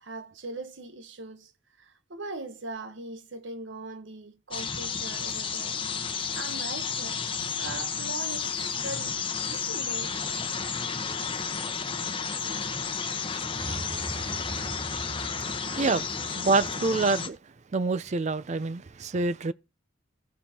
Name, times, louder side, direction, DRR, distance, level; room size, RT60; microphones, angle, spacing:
voice 1, 0.0-1.5 1.8-7.2 7.5-10.1 15.5-16.1, right 2 dB, 75° right, 1.1 m, -41 dB
sound 1, 4.5-17.3, left 6 dB, 25° left, 1.0 m, -32 dB
sound 2, 13.5-16.6, right 2 dB, 20° right, 0.9 m, -40 dB
voice 2, 15.5-17.4 17.7-19.5, right 3 dB, 40° right, 0.4 m, -27 dB
15.5 x 6.7 x 2.9 m
head